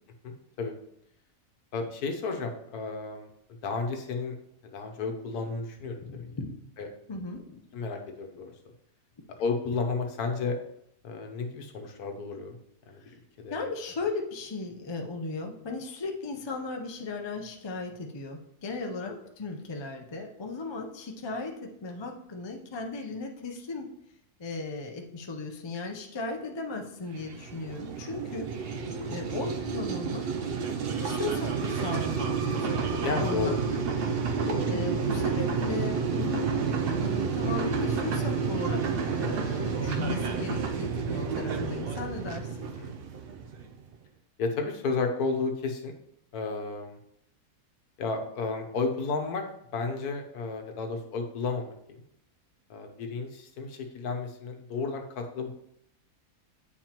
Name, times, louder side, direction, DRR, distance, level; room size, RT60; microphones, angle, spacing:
voice 1, 0.2-0.7 1.7-3.3 3.6-4.3 4.7-6.3 6.8-6.9 7.7-8.5 9.4-10.6 11.0-12.6 12.9-13.0 13.4-13.7 19.1-19.2 29.0-29.2 33.0-33.6 34.4-34.7 39.8-40.0 42.8-42.9 44.4-45.9 46.3-47.0 48.0-49.4 49.7-52.0 52.7-55.5, left 4 dB, 75° left, 4 dB, 1.4 m, -32 dB
voice 2, 6.0-6.5 7.1-7.7 13.5-23.9 24.4-28.5 29.1-30.2 31.0-33.8 34.7-38.8 39.1-42.7, left 3 dB, 40° left, 2 dB, 0.3 m, -36 dB
sound 1, 27.1-43.8, right 5 dB, 90° right, 0.5 m, -30 dB
9.0 x 4.5 x 2.9 m, 0.74 s
omnidirectional pair, 1.7 m